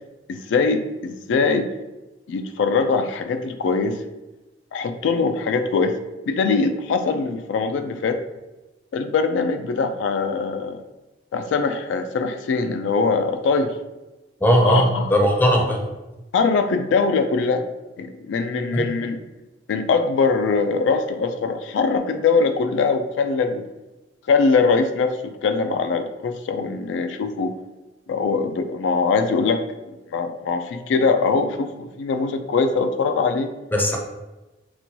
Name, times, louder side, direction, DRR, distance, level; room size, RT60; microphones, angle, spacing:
voice 1, 0.3-1.7 2.3-4.0 4.7-5.9 6.3-8.2 8.9-10.8 11.3-13.7 14.6-15.4 16.3-17.6 18.0-19.2 19.7-23.6 24.3-27.5 28.1-29.6 30.1-33.5, left 4 dB, 85° left, 8 dB, 0.3 m, -22 dB
voice 2, 14.4-15.9 18.7-18.9 33.7-34.0, equal, 10° left, 0 dB, 0.5 m, -18 dB
4.1 x 2.2 x 2.8 m, 1.1 s
head